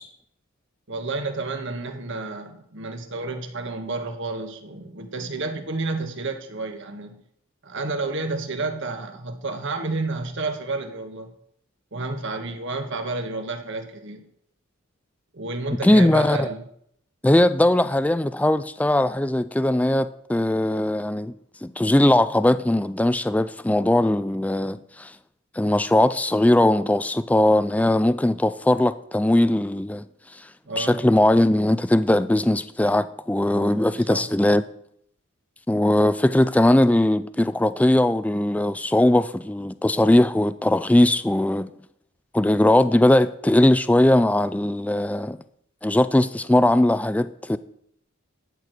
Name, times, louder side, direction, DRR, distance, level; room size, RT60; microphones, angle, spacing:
voice 1, 0.9-7.2 7.6-11.3 11.9-14.3 15.3-16.6 30.6-31.0 33.5-34.2, right 3 dB, 60° right, 1.4 m, -30 dB
voice 2, 15.8-16.5 17.2-21.3 21.6-25.1 25.5-30.1 30.3-30.5 30.8-34.6 35.7-41.7 42.3-45.4 45.8-47.6, left 1 dB, 5° left, 0.3 m, -19 dB
13.5 x 4.6 x 8.0 m
head